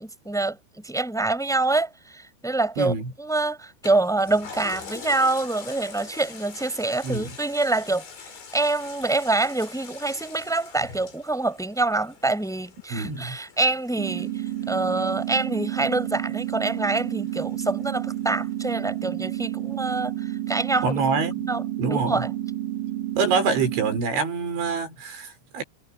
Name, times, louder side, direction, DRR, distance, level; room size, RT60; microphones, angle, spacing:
voice 1, 0.0-21.0 21.4-21.6 21.9-22.3, right 2 dB, ahead, 5.2 m, -26 dB
voice 2, 2.8-3.1 7.0-7.4 12.9-13.4 20.8-21.5 21.8-22.3 23.2-25.6, right 4 dB, 80° right, 7.0 m, -26 dB
Toilet flush, 3.8-18.7 19.1-19.2, left 5 dB, 80° left, 8.3 m, -45 dB
sound 1, 14.0-24.0, right 13 dB, 60° right, 2.9 m, -30 dB
omnidirectional pair, 5.3 m